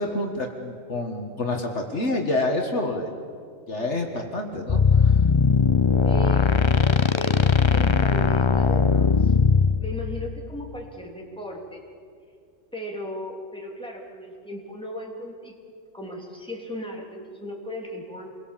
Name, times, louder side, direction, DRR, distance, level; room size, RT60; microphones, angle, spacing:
voice 1, 0.0-3.1 3.7-5.1, left 2 dB, 55° left, 2 dB, 2.0 m, -28 dB
sound 1, 4.7-9.8, left 5 dB, 35° left, 0.5 m, -19 dB
voice 2, 6.0-7.4 7.7-9.3 9.8-11.8 12.7-15.5 15.9-18.3, equal, 5° left, -1 dB, 3.1 m, -37 dB
28.0 x 23.0 x 7.4 m, 2.3 s
omnidirectional pair, 1.4 m